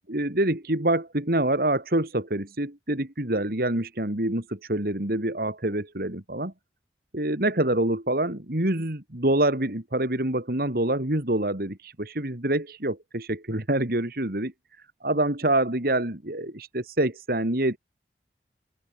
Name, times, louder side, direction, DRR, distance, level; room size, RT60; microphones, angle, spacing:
voice 1, 0.1-6.5 7.1-14.5 15.0-17.8, right 1 dB, 55° right, 2.7 m, -26 dB
open air
head